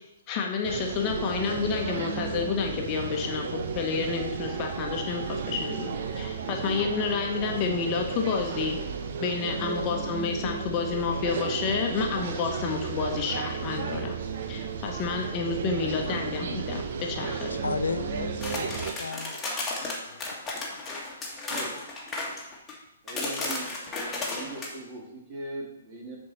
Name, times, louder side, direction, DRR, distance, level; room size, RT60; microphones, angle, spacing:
voice 1, 0.3-8.8 9.2-14.2 14.5-17.5, left 5 dB, 30° left, 2 dB, 1.1 m, -30 dB
sound 1, 0.6-18.9, right 5 dB, 55° right, 0.8 m, -33 dB
voice 2, 17.5-19.4 19.8-20.2, left 4 dB, 85° left, 10 dB, 0.5 m, -34 dB
sound 2, 18.4-22.7 23.1-24.7, left 2 dB, 10° left, 1.8 m, -34 dB
voice 3, 21.5-21.9 23.0-23.7 24.2-26.2, right 2 dB, 25° right, -3 dB, 2.7 m, -39 dB
10.0 x 4.6 x 4.3 m, 0.88 s
hypercardioid pair, 130°, 0 cm